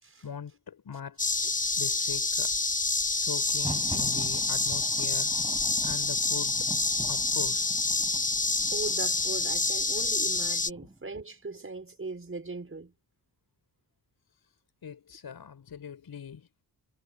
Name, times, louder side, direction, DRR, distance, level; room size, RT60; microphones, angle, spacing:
voice 1, 0.2-2.5 3.2-5.3 5.8-6.7 7.1-7.8 14.8-16.5, left 7 dB, 70° left, 6.9 m, -41 dB
sound 1, 1.2-10.7, left 3 dB, 20° left, 1.1 m, -28 dB
Thunder, 3.4-11.1, right 1 dB, 15° right, 6.6 m, -43 dB
voice 2, 8.7-12.9, right 3 dB, 35° right, 6.3 m, -39 dB
cardioid pair, 70°, 39 cm